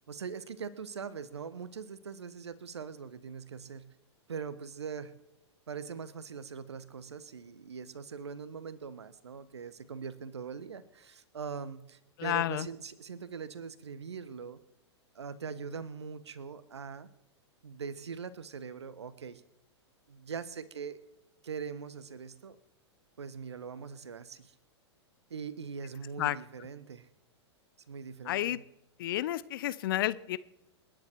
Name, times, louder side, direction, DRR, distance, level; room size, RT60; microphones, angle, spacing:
voice 1, 0.1-3.9 4.3-5.1 5.7-14.6 15.1-17.1 17.6-19.4 20.1-21.0 21.4-22.6 23.2-24.5 25.3-27.1 27.9-28.6, right 6 dB, 70° right, 15 dB, 1.3 m, -42 dB
voice 2, 12.2-12.7 26.2-26.4 28.3-28.6 29.0-30.4, left 14 dB, 50° left, 18 dB, 0.8 m, -31 dB
29.0 x 10.5 x 4.6 m, 0.87 s
figure-of-eight pair, 105°, 15 cm